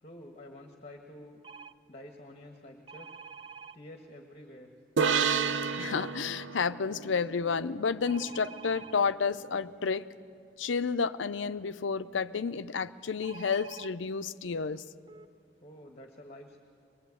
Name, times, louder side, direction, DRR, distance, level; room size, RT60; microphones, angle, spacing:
voice 1, 0.0-1.4 1.9-3.1 3.7-4.7 15.6-16.6, left 1 dB, 35° left, 3 dB, 1.4 m, -49 dB
sound 1, 1.4-1.7 2.9-3.8 8.0-8.9 13.2-13.9 14.7-14.8 15.1-15.3, right 5 dB, 25° right, 0.5 m, -47 dB
sound 2, 5.0-8.4, right 6 dB, 80° right, 0.6 m, -31 dB
voice 2, 5.8-10.1 10.6-14.8, left 5 dB, 85° left, 12 dB, 0.6 m, -31 dB
22.5 x 20.5 x 8.4 m, 2.3 s
head